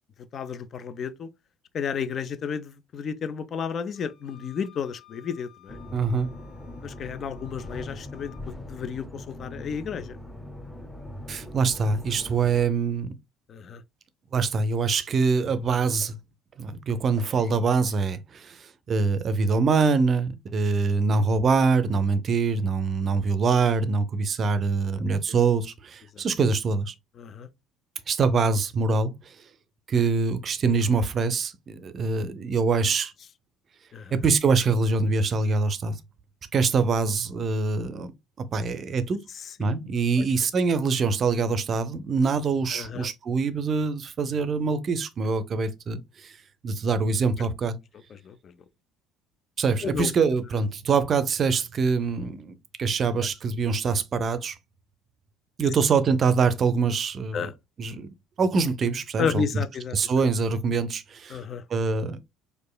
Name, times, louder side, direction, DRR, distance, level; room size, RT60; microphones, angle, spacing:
voice 1, 0.3-1.3 1.7-5.8 6.8-10.2 13.5-13.8 26.1-26.2 27.2-27.5 33.9-34.1 39.3-39.7 42.7-43.1 48.1-48.5 49.8-50.1 53.0-53.1 57.3-57.5 59.2-60.1 61.3-61.6, left 6 dB, 45° left, 0.4 m, -32 dB
Wind instrument woodwind instrument, 3.9-8.5, left 15 dB, 85° left, 1.3 m, -56 dB
sound 1, 5.7-12.7, left 1 dB, 10° left, 0.8 m, -41 dB
voice 2, 5.9-6.3 11.3-13.1 14.3-16.2 16.6-26.9 28.1-29.3 29.9-33.1 34.1-36.0 36.5-38.1 38.4-39.2 39.6-46.4 46.6-47.8 49.6-54.6 55.6-57.5 57.8-59.6 59.9-61.4 61.7-62.2, right 4 dB, 40° right, 0.5 m, -24 dB
4.7 x 2.5 x 2.2 m
hypercardioid pair, 60°, 0 cm